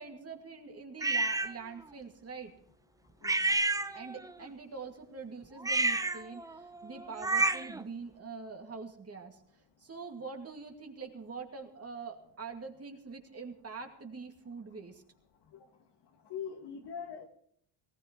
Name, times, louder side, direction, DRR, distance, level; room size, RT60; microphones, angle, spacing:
voice 1, 0.0-2.5 3.9-9.4 9.8-15.0, right 4 dB, 30° right, 4 dB, 2.2 m, -44 dB
sound 1, 1.0-1.5 3.2-4.3 5.6-7.8, right 2 dB, 10° right, 0.5 m, -30 dB
voice 2, 16.3-17.3, left 7 dB, 55° left, 5 dB, 2.1 m, -41 dB
19.0 x 17.5 x 3.1 m, 0.64 s
cardioid pair, 120°, 48 cm